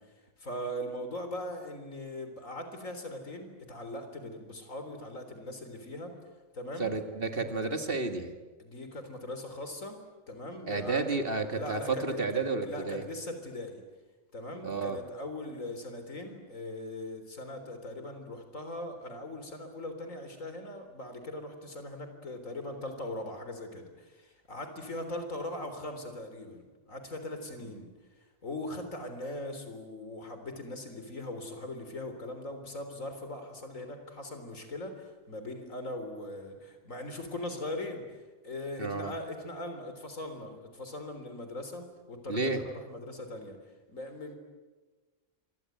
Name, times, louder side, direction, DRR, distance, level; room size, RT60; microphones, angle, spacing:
voice 1, 0.0-6.2 6.5-6.9 8.6-10.0 10.3-11.2 11.5-13.8 14.3-43.6 43.9-44.3, left 1 dB, 70° left, 7 dB, 4.1 m, -40 dB
voice 2, 6.8-8.3 10.7-13.0 14.6-15.0 38.8-39.1 42.3-42.6, right 3 dB, 40° right, 7 dB, 2.2 m, -31 dB
27.5 x 24.0 x 9.2 m, 1.3 s
omnidirectional pair, 1.4 m